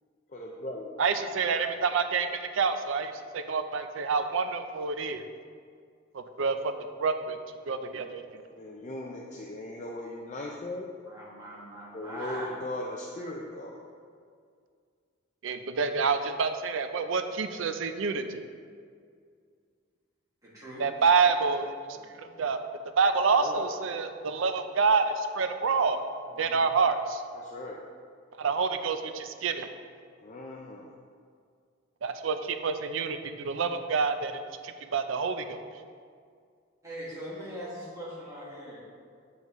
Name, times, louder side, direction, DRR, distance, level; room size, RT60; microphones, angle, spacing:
voice 1, 0.3-1.0 8.5-10.9 11.9-13.8 21.9-22.4 23.4-23.6 26.3-26.6 27.3-27.8 30.2-30.9, left 1 dB, 35° left, -1 dB, 0.5 m, -39 dB
voice 2, 1.0-5.3 6.1-6.7 7.0-7.4 7.7-8.2 15.4-18.4 20.8-21.7 22.4-22.6 23.0-26.0 26.4-27.2 28.4-29.7 32.0-34.3 34.6-35.6, right 5 dB, 75° right, 8 dB, 0.5 m, -27 dB
voice 3, 11.1-12.6 20.4-20.8 36.8-38.8, equal, 15° right, -8 dB, 2.0 m, -41 dB
8.0 x 7.2 x 3.1 m, 2.2 s
head